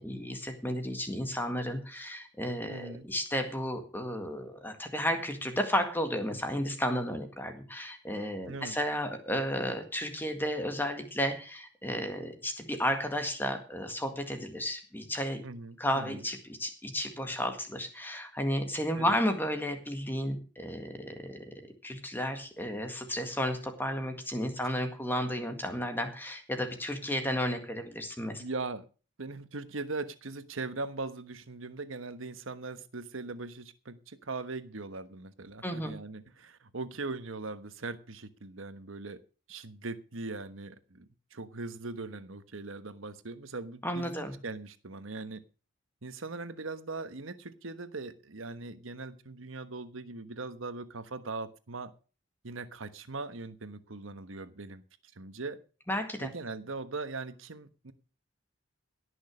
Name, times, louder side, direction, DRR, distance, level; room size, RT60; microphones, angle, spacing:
voice 1, 0.0-15.4 15.8-21.5 21.8-28.4 35.6-36.0 43.8-44.4 55.9-56.3, equal, 10° left, 1.8 m, -33 dB
voice 2, 2.7-3.1 8.5-8.8 15.4-16.2 18.9-19.2 24.6-24.7 28.4-28.8 29.2-39.2 39.5-45.4 46.0-51.9 52.4-54.8 55.2-55.6 56.2-57.9, right 3 dB, 80° right, 1.2 m, -40 dB
17.5 x 6.4 x 6.3 m
head